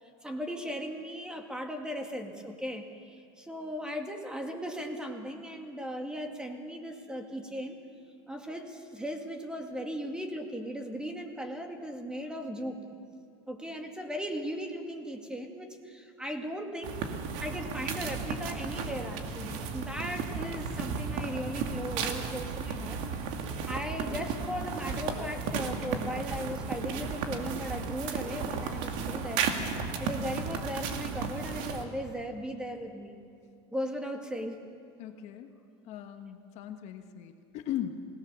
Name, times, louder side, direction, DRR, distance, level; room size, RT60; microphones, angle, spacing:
voice 1, 0.0-7.8 8.3-12.9 13.5-17.0 17.4-23.3 23.6-29.5 30.0-33.2 33.7-34.6, equal, 5° right, 4 dB, 2.1 m, -37 dB
Walking Through Snow, 16.8-31.8, right 5 dB, 65° right, 2.3 m, -34 dB
voice 2, 35.0-35.5 35.8-38.1, left 10 dB, 55° left, 7 dB, 1.3 m, -38 dB
28.5 x 18.0 x 7.0 m, 2.5 s
supercardioid pair, 130°, 14 cm